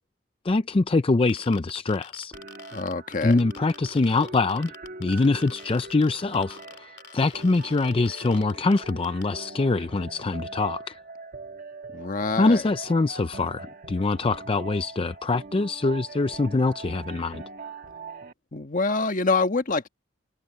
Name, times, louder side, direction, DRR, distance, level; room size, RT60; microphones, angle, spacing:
voice 1, 0.4-2.3 3.2-4.7 5.0-11.0 12.4-17.4, left 3 dB, 30° left, 0.4 m, -24 dB
sound 1, 1.3-9.2, left 8 dB, 65° left, 2.8 m, -46 dB
sound 2, 2.3-18.3, right 3 dB, 50° right, 1.7 m, -42 dB
voice 2, 2.7-3.4 11.9-12.6 18.5-19.9, left 3 dB, 45° left, 1.4 m, -26 dB
head